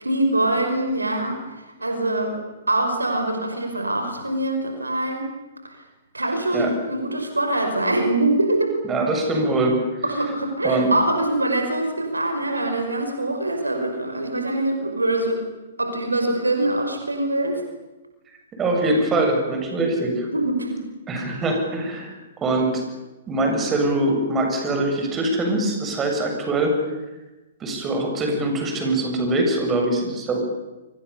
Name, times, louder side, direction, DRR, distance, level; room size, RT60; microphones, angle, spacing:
voice 1, 0.0-1.4 1.8-2.4 2.7-5.3 5.6-5.8 6.1-8.8 10.0-15.5 15.8-17.6 20.3-20.7, right 1 dB, 85° right, 5 dB, 5.6 m, -23 dB
voice 2, 8.9-9.8 10.6-10.9 18.5-20.3 21.1-22.8 23.3-26.7 27.6-30.4, right 2 dB, 20° right, 3 dB, 7.5 m, -23 dB
29.5 x 25.0 x 7.2 m, 1.1 s
figure-of-eight pair, 115°, 0 cm